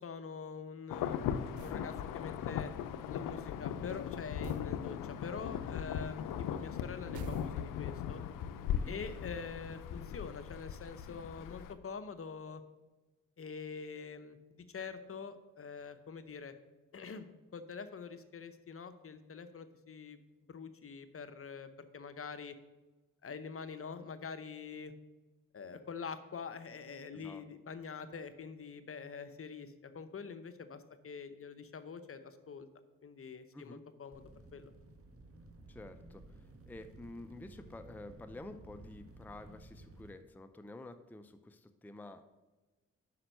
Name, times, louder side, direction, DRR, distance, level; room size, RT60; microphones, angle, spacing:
voice 1, 0.0-2.7 3.1-6.2 6.5-8.2 8.9-12.6 13.4-16.5 16.9-22.6 23.2-24.9 25.5-32.7 33.0-34.2 34.5-34.7, left 5 dB, 45° left, 10 dB, 0.8 m, -45 dB
Insect / Thunder / Rain, 0.9-11.7, left 9 dB, 80° left, 0.5 m, -39 dB
sound 1, 1.6-1.9 4.4-4.8 7.1-7.9, right 8 dB, 65° right, 0.6 m, -48 dB
voice 2, 27.1-27.4 33.5-33.8 35.7-42.2, left 2 dB, 5° left, 9 dB, 0.6 m, -50 dB
sound 2, 34.1-40.1, right 2 dB, 45° right, 1.6 m, -55 dB
5.8 x 5.5 x 6.6 m, 1.2 s
supercardioid pair, 45°, 32 cm